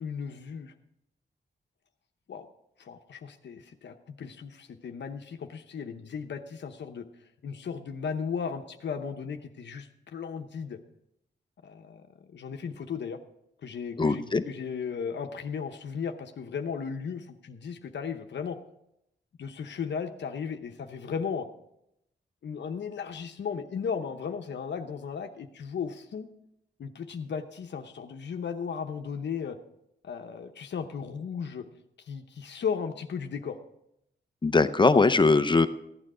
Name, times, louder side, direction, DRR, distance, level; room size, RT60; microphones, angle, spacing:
voice 1, 0.0-0.7 2.3-2.5 2.8-7.1 7.4-10.8 11.6-13.2 13.6-18.6 19.4-21.5 22.4-26.3 26.8-29.6 30.0-31.6 32.0-33.6, left 6 dB, 70° left, 6 dB, 0.8 m, -36 dB
voice 2, 14.0-14.4 34.4-35.7, left 3 dB, 25° left, 11 dB, 0.6 m, -21 dB
15.0 x 9.1 x 4.9 m, 0.81 s
wide cardioid pair, 110°, 19 cm